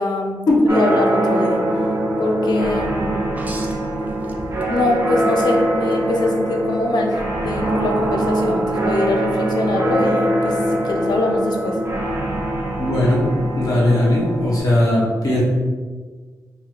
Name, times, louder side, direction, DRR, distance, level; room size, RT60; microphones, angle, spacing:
voice 1, 0.0-0.4 0.7-1.6 2.2-3.2 4.7-11.8, left 2 dB, 85° left, 2 dB, 0.4 m, -23 dB
sound 1, 0.7-14.6, right 1 dB, 40° right, 0.8 m, -22 dB
sound 2, 3.3-5.0 5.4-6.0 7.6-7.7, right 1 dB, 25° right, 0.4 m, -37 dB
voice 2, 12.8-13.2 13.6-15.4, left 1 dB, 60° left, -5 dB, 0.9 m, -18 dB
3.0 x 2.8 x 2.5 m, 1.5 s
wide cardioid pair, 95°, 7 cm